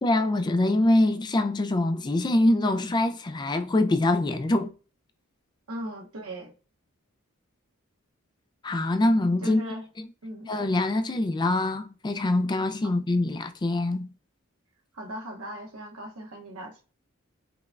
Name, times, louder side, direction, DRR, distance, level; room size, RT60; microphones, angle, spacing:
voice 1, 0.0-4.7 8.6-9.6 10.5-14.1, left 1 dB, 20° left, 0.3 m, -24 dB
voice 2, 5.7-6.5 9.4-9.9 10.2-10.5 14.9-16.8, equal, 90° right, 1.0 m, -38 dB
5.0 x 2.2 x 2.4 m
head